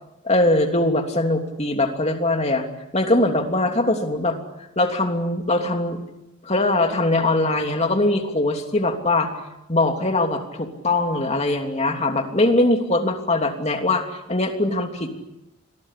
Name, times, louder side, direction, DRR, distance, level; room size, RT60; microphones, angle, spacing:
voice 1, 0.2-2.7 2.9-4.4 4.8-6.0 6.4-9.4 9.7-15.1, left 2 dB, 30° left, 4 dB, 3.0 m, -21 dB
29.0 x 22.5 x 8.4 m, 0.92 s
head